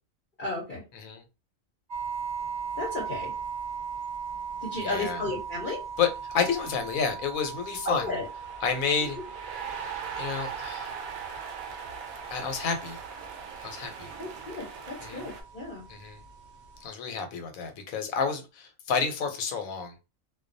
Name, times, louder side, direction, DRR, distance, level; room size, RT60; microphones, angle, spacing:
voice 1, 0.4-0.8 2.8-3.3 4.6-5.8 7.8-8.2 14.2-15.8, left 2 dB, 45° left, -3 dB, 0.8 m, -33 dB
sound 1, 1.9-16.9, right 6 dB, 70° right, 0.4 m, -39 dB
voice 2, 4.8-5.2 6.0-6.1 6.3-8.0 8.6-9.2 10.2-10.9 12.3-13.0 13.6-14.1 15.0-15.2 15.9-16.2 16.8-18.4 18.9-19.9, left 6 dB, 85° left, 6 dB, 1.1 m, -29 dB
sound 2, 8.2-15.4, right 6 dB, 90° right, 1.0 m, -40 dB
2.3 x 2.2 x 2.5 m, 0.28 s
omnidirectional pair, 1.4 m